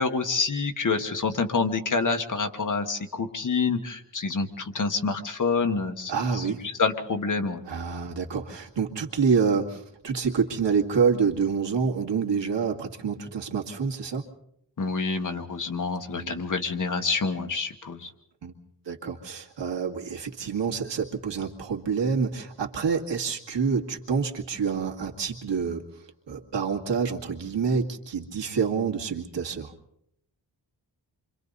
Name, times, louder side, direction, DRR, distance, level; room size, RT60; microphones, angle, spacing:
voice 1, 0.0-7.6 14.8-18.1, left 4 dB, 45° left, 6 dB, 1.5 m, -27 dB
voice 2, 6.1-6.6 7.7-14.2 16.1-16.4 18.4-18.5 18.9-29.7, right 6 dB, 80° right, 2 dB, 2.3 m, -27 dB
28.5 x 25.0 x 4.1 m, 0.73 s
wide cardioid pair, 155°, 43 cm